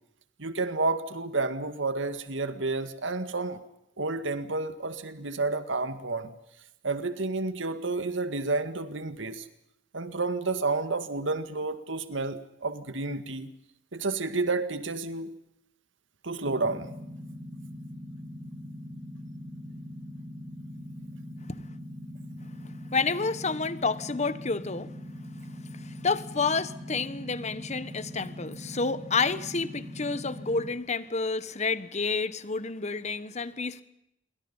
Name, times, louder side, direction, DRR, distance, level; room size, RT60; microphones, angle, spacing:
voice 1, 0.4-3.6 4.0-6.3 6.8-9.5 9.9-13.5 13.9-15.3 16.2-16.9, right 3 dB, 85° right, 1.9 m, -30 dB
sound 1, 16.4-30.7, left 1 dB, 45° right, 5.2 m, -42 dB
voice 2, 22.9-24.9 25.7-33.8, left 4 dB, 40° left, 1.3 m, -29 dB
28.0 x 23.5 x 5.7 m
head